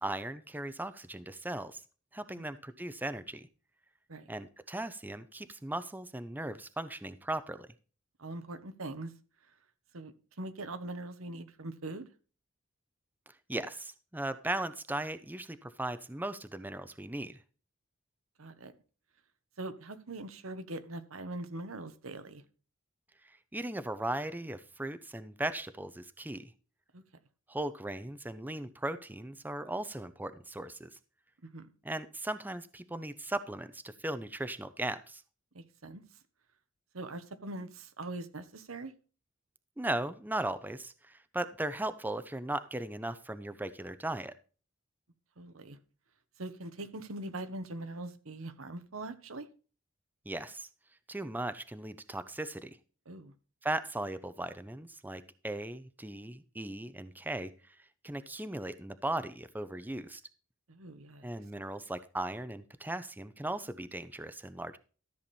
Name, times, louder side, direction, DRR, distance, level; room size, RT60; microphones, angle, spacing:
voice 1, 0.0-1.8 2.1-3.5 4.3-7.7 13.5-17.4 23.5-26.5 27.5-30.9 31.8-35.2 39.8-44.3 50.3-50.7 51.1-52.8 53.6-57.8 58.0-60.2 61.2-64.8, right 1 dB, 10° right, 12 dB, 0.6 m, -37 dB
voice 2, 8.2-9.1 9.9-12.1 18.4-18.7 19.6-22.4 26.9-27.0 31.4-31.7 35.5-36.0 36.9-38.9 45.4-45.8 46.4-49.5 53.1-53.3 60.7-61.3, right 2 dB, 85° right, 10 dB, 1.2 m, -42 dB
13.5 x 7.2 x 4.2 m, 0.37 s
head